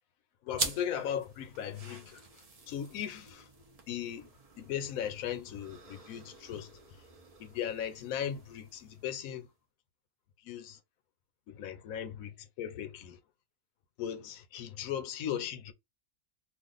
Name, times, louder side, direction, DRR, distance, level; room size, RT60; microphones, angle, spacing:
voice 1, 0.4-3.5 3.9-4.3 4.6-7.0 7.4-9.5 10.4-10.8 11.5-13.2 14.0-15.7, left 9 dB, 75° left, 1.0 m, -38 dB
sound 1, 0.5-9.5, right 3 dB, 55° right, 0.4 m, -44 dB
2.5 x 2.3 x 3.7 m
omnidirectional pair, 1.5 m